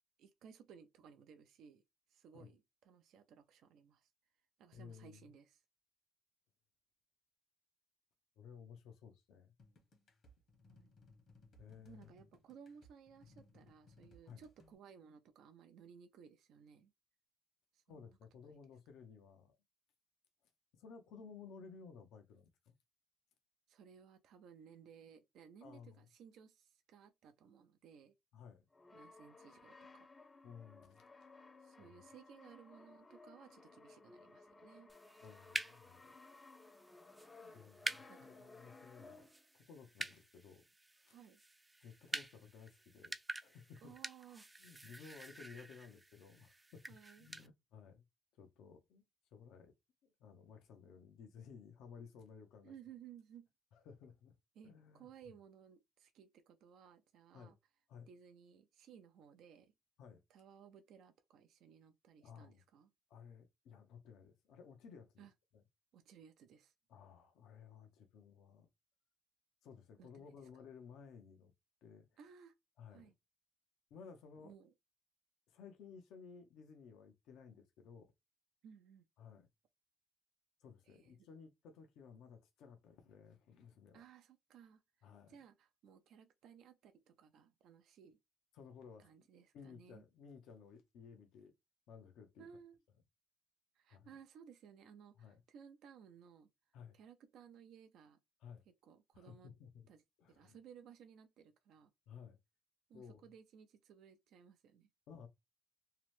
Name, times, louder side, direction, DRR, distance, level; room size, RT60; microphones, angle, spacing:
voice 1, 0.2-1.8 2.1-4.1 4.6-5.6 10.7-10.9 11.9-16.9 17.7-18.2 23.7-28.1 28.9-30.1 31.6-34.9 37.4-37.7 38.1-38.3 41.1-41.4 43.8-44.5 46.9-47.3 52.6-53.5 54.6-57.6 58.1-59.7 60.3-62.9 65.2-65.3 65.9-66.7 70.0-70.4 72.2-72.5 72.9-73.1 74.4-74.7 78.6-79.1 80.8-81.3 83.9-88.2 89.0-90.0 92.4-92.8 93.7-96.5 96.9-98.2 98.8-99.5 99.9-100.0 100.3-101.9 102.9-104.9, right 7 dB, 80° right, 0.4 m, -59 dB
voice 2, 4.7-5.2 8.4-9.5 11.6-12.1 14.3-14.4 17.9-19.5 20.7-22.7 25.6-26.0 28.3-28.7 30.4-31.0 31.8-31.9 35.2-36.2 37.5-40.7 41.1-41.2 41.8-43.2 43.4-43.9 44.6-46.9 47.2-48.0 48.4-49.0 49.3-49.7 50.0-52.7 53.7-54.4 54.6-55.3 57.3-57.5 57.9-58.1 60.0-60.2 62.2-62.6 63.1-65.3 65.5-65.6 66.9-68.7 69.6-71.5 71.8-72.1 72.8-73.1 73.9-74.5 75.5-78.1 79.2-79.5 80.6-84.0 85.0-85.4 88.5-89.3 89.5-91.5 91.9-92.5 93.9-94.2 95.2-95.4 96.7-97.0 98.4-98.6 99.1-99.9 100.2-100.6 102.1-102.4 102.9-103.2 105.1-105.3, left 6 dB, 85° left, 0.6 m, -56 dB
sound 1, 9.6-14.7, left 2 dB, 65° left, 1.1 m, -65 dB
Brass instrument, 28.7-39.5, left 3 dB, 30° left, 0.6 m, -59 dB
sound 2, 34.9-47.5, right 2 dB, 15° right, 0.4 m, -48 dB
2.8 x 2.0 x 3.0 m
cardioid pair, 90°, 0 cm